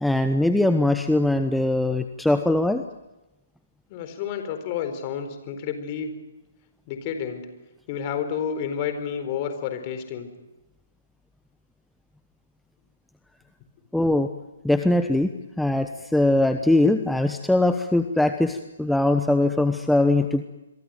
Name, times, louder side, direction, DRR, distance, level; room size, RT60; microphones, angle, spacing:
voice 1, 0.0-2.8 13.9-14.3 14.6-15.3 15.6-20.4, left 2 dB, ahead, 8 dB, 1.0 m, -21 dB
voice 2, 3.9-6.1 6.9-7.5 7.9-10.3, left 7 dB, 35° left, 8 dB, 4.4 m, -30 dB
27.0 x 23.0 x 9.2 m, 1.0 s
figure-of-eight pair, 130°, 0 cm